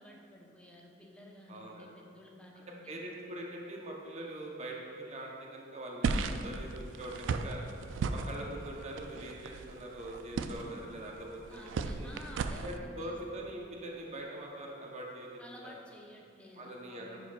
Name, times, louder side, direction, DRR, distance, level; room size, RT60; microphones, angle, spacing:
voice 1, 0.0-2.9 11.5-13.2 15.4-17.2, left 1 dB, 5° left, -2 dB, 0.6 m, -52 dB
voice 2, 1.5-1.9 2.9-7.6 8.1-11.7 12.0-12.1 12.6-15.7 16.6-17.2, right 1 dB, 35° right, -1 dB, 0.7 m, -43 dB
sound 1, 6.0-12.8, right 4 dB, 75° right, 0.3 m, -36 dB
10.0 x 5.0 x 2.3 m, 2.4 s
head